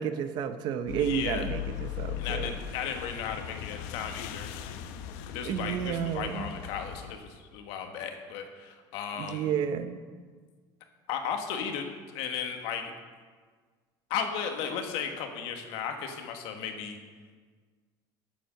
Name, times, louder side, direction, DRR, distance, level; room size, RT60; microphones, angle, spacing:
voice 1, 0.0-2.5 5.4-6.5 9.2-10.0, right 8 dB, 45° right, 10 dB, 0.7 m, -31 dB
sound 1, 0.9-7.1, left 11 dB, 85° left, 0.7 m, -38 dB
voice 2, 1.0-1.5 2.2-4.5 5.3-9.5 11.1-11.9 12.1-12.9 14.1-17.0, left 7 dB, 70° left, 5 dB, 1.3 m, -35 dB
9.3 x 7.4 x 6.4 m, 1.5 s
cardioid pair, 165°, 10 cm